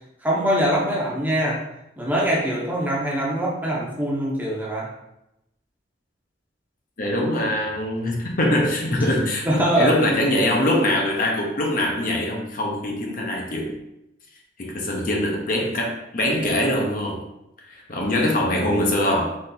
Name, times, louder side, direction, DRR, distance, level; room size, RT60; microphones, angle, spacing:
voice 1, 0.2-1.6 2.0-4.9 9.4-10.8, right 1 dB, 10° right, -4 dB, 0.9 m, -23 dB
voice 2, 7.0-13.7 14.6-17.2 17.7-19.4, left 1 dB, 40° left, -1 dB, 0.8 m, -23 dB
4.1 x 3.3 x 3.9 m, 0.87 s
head